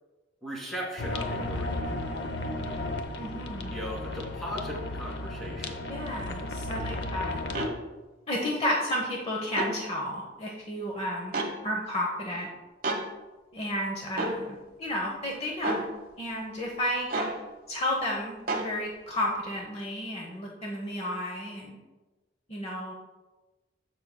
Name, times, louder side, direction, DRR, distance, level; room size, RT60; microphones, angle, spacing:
voice 1, 0.4-1.8 3.7-5.8, equal, ahead, -3 dB, 2.0 m, -37 dB
sound 1, 1.0-7.7, left 1 dB, 65° left, 0.8 m, -34 dB
voice 2, 3.2-3.8 5.9-7.4 8.3-11.3 11.6-12.5 13.5-15.8 16.2-17.1 17.7-21.8 22.5-22.9, left 1 dB, 35° left, -1 dB, 0.9 m, -32 dB
sound 2, 7.5-7.7 9.5-9.8 11.3-11.5 12.8-13.0 14.2-14.4 15.6-15.9 17.1-17.4 18.5-18.7, right 2 dB, 50° right, 1.1 m, -29 dB
14.0 x 5.6 x 2.2 m, 1.2 s
head